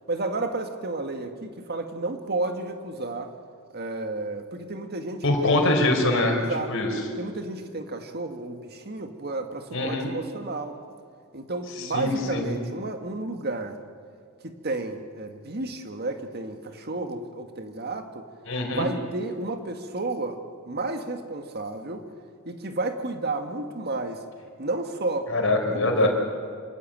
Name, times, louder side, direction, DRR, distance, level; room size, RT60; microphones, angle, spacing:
voice 1, 0.1-3.3 3.7-5.7 6.4-6.8 7.2-10.8 11.3-13.8 14.4-18.2 18.8-20.4 20.7-22.0 22.5-24.2 24.6-25.3 25.7-26.1, right 2 dB, 50° right, 6 dB, 1.9 m, -32 dB
voice 2, 5.2-6.4 6.7-6.9 9.7-10.1 11.8-12.5 18.5-18.9 25.3-26.1, left 2 dB, 60° left, 2 dB, 4.6 m, -23 dB
27.0 x 15.5 x 9.0 m, 2.2 s
head